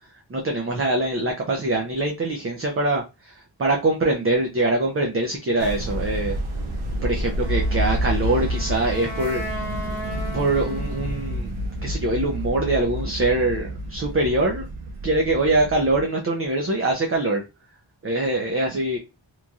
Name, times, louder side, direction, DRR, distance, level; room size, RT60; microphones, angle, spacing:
voice 1, 0.3-6.4 7.0-9.6 10.3-11.5 11.8-14.6 15.0-17.4 18.0-19.0, right 2 dB, 30° right, 0.5 m, -23 dB
sound 1, 5.6-16.0, right 1 dB, 85° right, 0.7 m, -29 dB
Wind instrument woodwind instrument, 7.4-11.6, equal, 5° right, 1.4 m, -36 dB
3.0 x 2.6 x 2.3 m
wide cardioid pair, 85°, 46 cm